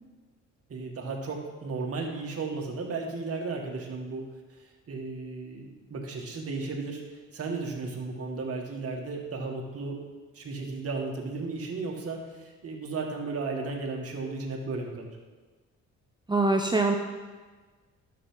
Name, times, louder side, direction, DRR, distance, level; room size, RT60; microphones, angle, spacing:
voice 1, 0.7-4.3 4.9-7.0 7.3-10.0 10.3-15.1, right 3 dB, 50° right, 0 dB, 2.0 m, -34 dB
voice 2, 16.3-17.0, right 3 dB, 15° right, 3 dB, 0.7 m, -23 dB
11.5 x 7.2 x 4.0 m, 1.3 s
cardioid pair, 90°, 30 cm